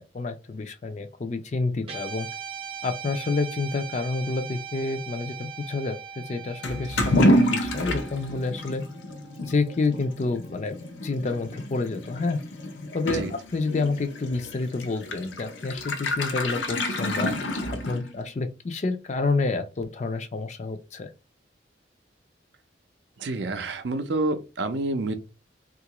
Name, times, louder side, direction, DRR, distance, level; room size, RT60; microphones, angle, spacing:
voice 1, 0.0-2.3 2.8-8.8 9.4-10.8 11.0-12.4 12.9-17.6 17.8-21.1, left 3 dB, 35° left, 0.4 m, -29 dB
Guitar, 1.8-10.3, right 7 dB, 30° right, 0.7 m, -40 dB
Toilet flush / Liquid, 6.6-18.3, equal, 80° left, 0.6 m, -28 dB
voice 2, 23.2-25.1, right 2 dB, 65° right, 0.5 m, -28 dB
3.6 x 2.4 x 2.9 m
head